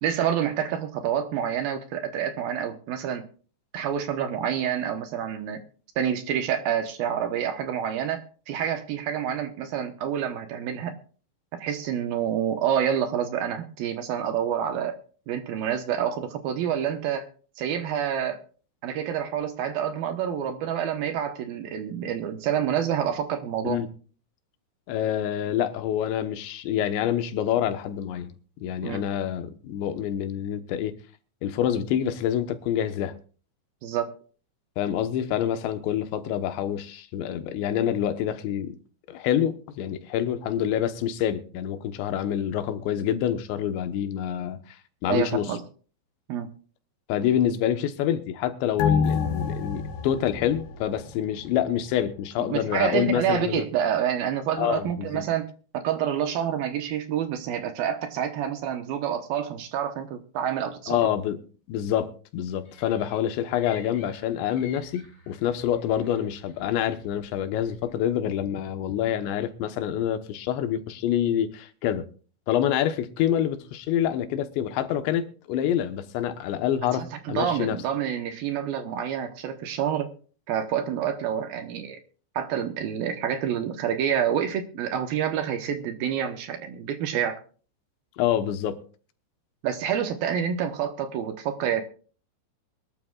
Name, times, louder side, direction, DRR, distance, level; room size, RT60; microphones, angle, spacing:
voice 1, 0.0-3.3 3.7-5.6 6.0-10.9 11.5-15.0 15.3-17.3 17.6-18.4 18.8-23.8 28.8-29.0 33.8-34.1 45.1-45.6 46.3-46.5 52.5-55.5 55.7-61.1 76.9-80.1 80.5-82.0 82.4-87.4 89.6-91.8, right 9 dB, 70° right, 2.5 m, -28 dB
voice 2, 24.9-28.3 28.6-31.0 31.4-33.1 34.8-38.8 39.1-44.6 45.0-45.5 47.1-53.6 54.6-55.2 60.9-61.4 61.7-72.1 72.5-77.8 88.2-88.8, left 10 dB, 90° left, 3.4 m, -27 dB
sound 1, 48.8-51.7 52.0-52.1, left 6 dB, 65° left, 3.8 m, -28 dB
sound 2, 62.7-68.1, left 5 dB, 30° left, 5.0 m, -51 dB
23.0 x 12.5 x 2.4 m
omnidirectional pair, 5.0 m